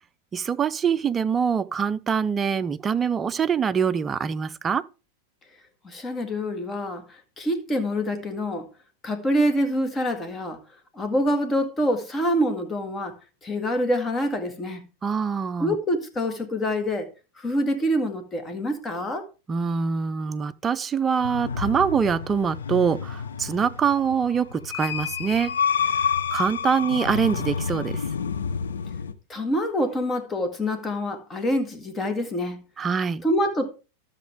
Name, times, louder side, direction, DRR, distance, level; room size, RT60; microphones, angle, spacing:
voice 1, 0.3-4.9 15.0-15.8 19.5-25.6 25.9-28.0 32.8-33.2, right 6 dB, 20° right, 0.5 m, -24 dB
voice 2, 5.8-8.7 9.0-10.6 10.9-13.2 13.4-14.8 15.6-17.1 17.4-19.2 29.3-32.6 33.2-33.7, equal, 20° left, 2.0 m, -26 dB
sound 1, 21.2-29.1, left 6 dB, 80° left, 0.8 m, -29 dB
12.5 x 7.2 x 3.5 m
hypercardioid pair, 95°, 0 cm